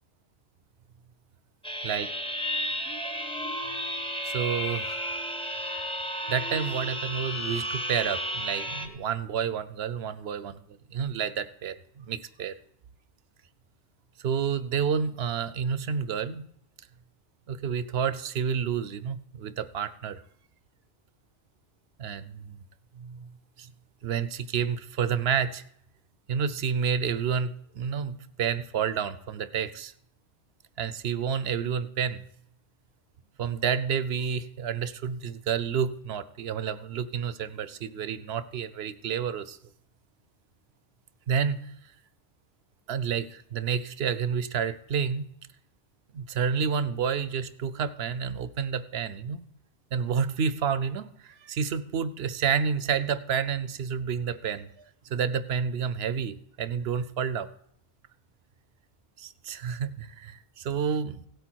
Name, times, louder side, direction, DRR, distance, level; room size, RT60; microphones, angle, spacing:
sound 1, 1.6-8.9, equal, 5° left, 1.1 m, -33 dB
voice 1, 4.2-5.2 6.3-10.6 10.9-12.6 14.2-16.4 17.5-20.2 22.0-22.6 23.0-23.3 23.6-23.7 24.0-25.6 26.3-29.9 30.8-32.2 33.4-39.6 41.3-41.7 42.9-45.3 46.1-49.4 49.9-54.7 55.0-57.5 59.2-61.3, right 7 dB, 75° right, 15 dB, 0.9 m, -29 dB
17.0 x 8.0 x 4.6 m, 0.72 s
omnidirectional pair, 1.1 m